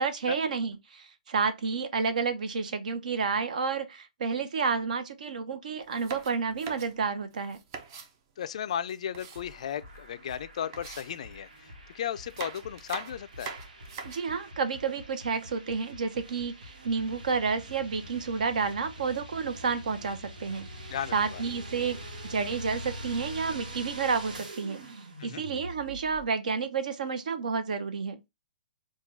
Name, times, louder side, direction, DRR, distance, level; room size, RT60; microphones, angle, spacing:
voice 1, 0.0-7.6 14.0-20.7 21.1-22.0 22.2-24.8 25.2-28.2, right 5 dB, 65° right, 0.8 m, -30 dB
sound 1, 5.8-8.1 8.7-10.0 10.3-10.4 10.7-11.7 12.2-14.4, right 5 dB, 30° right, 0.5 m, -43 dB
voice 2, 8.4-13.5 20.9-21.4 25.2-25.4, left 9 dB, 50° left, 0.3 m, -35 dB
sound 2, 9.3-26.2, right 1 dB, 85° right, 1.2 m, -44 dB
3.6 x 2.3 x 4.5 m
hypercardioid pair, 165°, 4 cm